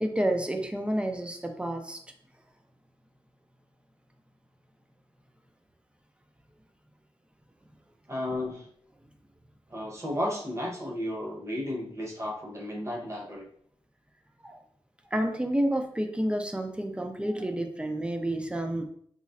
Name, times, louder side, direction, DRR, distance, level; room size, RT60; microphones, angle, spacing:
voice 1, 0.0-2.0 14.4-14.6 15.1-18.9, right 1 dB, 10° right, 5 dB, 0.5 m, -29 dB
voice 2, 8.1-8.7 9.7-13.5, left 1 dB, 25° right, -1 dB, 0.9 m, -33 dB
4.0 x 3.0 x 2.5 m, 0.63 s
wide cardioid pair, 90°, 11 cm